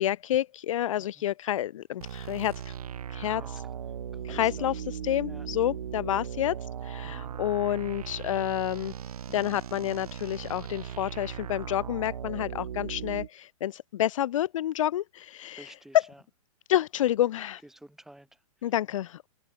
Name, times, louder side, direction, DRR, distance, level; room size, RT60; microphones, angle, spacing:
voice 1, 0.0-2.7 3.1-3.6 4.2-6.6 6.8-8.9 9.3-15.7 15.9-16.0 16.7-17.6 18.6-19.3, left 12 dB, 60° left, 1.1 m, -29 dB
sound 1, 2.0-13.3, right 9 dB, 80° right, 3.3 m, -38 dB
voice 2, 4.3-4.7 5.3-5.5 7.0-7.4 15.6-16.2 17.6-18.7, right 1 dB, ahead, 5.3 m, -51 dB
hypercardioid pair, 155°, 19 cm